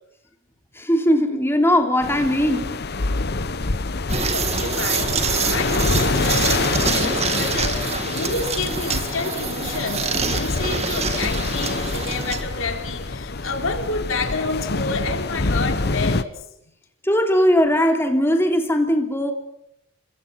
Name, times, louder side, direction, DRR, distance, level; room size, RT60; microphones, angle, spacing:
voice 1, 0.7-2.8 17.0-19.3, equal, 10° left, 3.0 m, -19 dB
sound 1, 2.0-16.2, left 3 dB, 50° left, 1.0 m, -26 dB
sound 2, 4.1-12.4, right 5 dB, 30° right, 2.0 m, -26 dB
voice 2, 4.2-16.7, left 3 dB, 70° left, 3.7 m, -29 dB
29.0 x 25.0 x 5.8 m
head